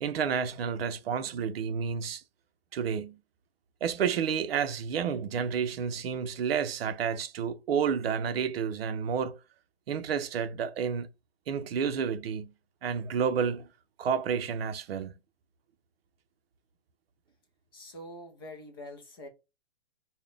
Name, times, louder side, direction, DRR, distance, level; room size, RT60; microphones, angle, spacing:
voice 1, 0.0-2.2 2.7-3.2 3.8-9.4 9.9-11.1 11.5-12.5 12.8-13.7 14.0-15.1, right 7 dB, 60° right, 0.6 m, -30 dB
voice 2, 17.7-19.3, left 1 dB, 20° left, 0.4 m, -45 dB
3.9 x 2.2 x 3.3 m
hypercardioid pair, 160°, 34 cm